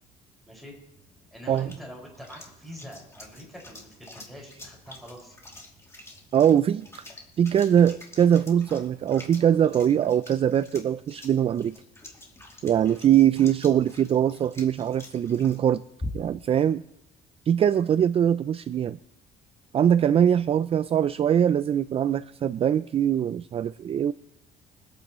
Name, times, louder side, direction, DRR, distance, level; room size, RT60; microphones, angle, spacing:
sound 1, 0.9-16.5, left 1 dB, 15° left, 2.6 m, -46 dB
voice 1, 1.3-5.3, equal, ahead, -2 dB, 5.5 m, -45 dB
voice 2, 6.3-7.0 7.4-11.8 12.6-15.8 16.1-16.8 17.5-19.0 19.7-24.1, right 9 dB, 35° right, 14 dB, 0.4 m, -22 dB
25.0 x 9.0 x 3.1 m, 0.89 s
cardioid pair, 110°, 17 cm